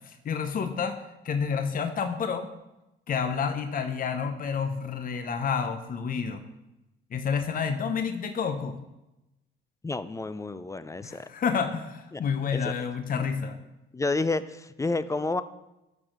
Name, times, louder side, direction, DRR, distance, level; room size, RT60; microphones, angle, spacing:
voice 1, 0.0-1.0 1.2-2.5 3.1-6.4 7.1-8.8 11.0-13.6, left 6 dB, 45° left, 7 dB, 0.7 m, -29 dB
voice 2, 9.8-11.3 12.1-12.2 12.5-12.7 13.9-15.4, left 3 dB, 15° left, 14 dB, 0.4 m, -30 dB
10.5 x 4.4 x 5.1 m, 0.95 s
cardioid pair, 90°, 20 cm